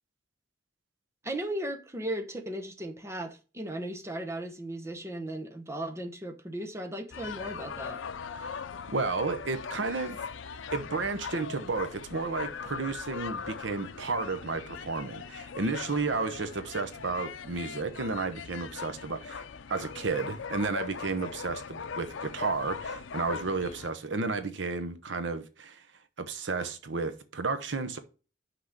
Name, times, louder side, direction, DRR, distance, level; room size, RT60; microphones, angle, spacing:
voice 1, 1.2-8.0, right 1 dB, 15° right, 0.9 m, -36 dB
sound 1, 7.1-23.9, left 6 dB, 85° left, 0.6 m, -40 dB
voice 2, 8.9-10.2 10.7-25.8 26.2-28.0, right 4 dB, 70° right, 0.9 m, -32 dB
6.0 x 5.0 x 6.5 m
head